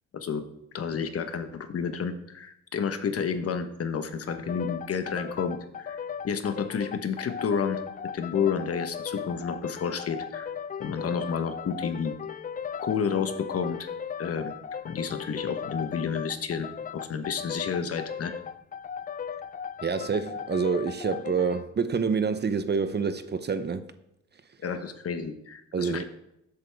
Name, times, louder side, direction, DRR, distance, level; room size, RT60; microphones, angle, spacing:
voice 1, 0.1-0.4 0.7-7.8 8.1-10.5 10.8-12.1 12.8-13.9 14.2-14.5 14.8-18.3 24.6-26.0, left 6 dB, 50° left, 1.2 m, -30 dB
sound 1, 4.3-21.7, left 7 dB, 30° left, 0.4 m, -37 dB
voice 2, 19.8-23.8 25.7-26.0, right 5 dB, 35° right, 0.8 m, -27 dB
14.5 x 8.0 x 3.5 m
cardioid pair, 90°, 30 cm